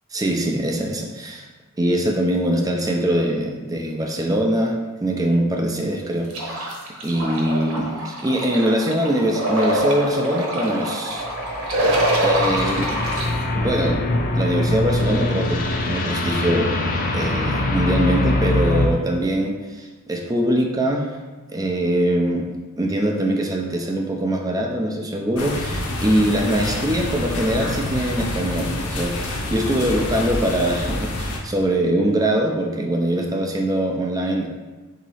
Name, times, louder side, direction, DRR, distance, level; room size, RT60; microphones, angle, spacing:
voice 1, 0.1-1.4 1.8-4.8 5.0-6.8 7.0-11.2 12.2-13.0 13.5-14.0 14.3-16.8 17.1-21.1 21.5-22.5 22.8-34.5, right 1 dB, 15° right, 1 dB, 0.4 m, -22 dB
sound 1, 6.3-13.3, right 1 dB, 70° right, 1.0 m, -24 dB
sound 2, 11.1-18.9, left 1 dB, 40° left, 0.5 m, -23 dB
sound 3, 25.4-31.4, left 1 dB, 75° left, 0.7 m, -27 dB
3.9 x 2.8 x 4.8 m, 1.3 s
head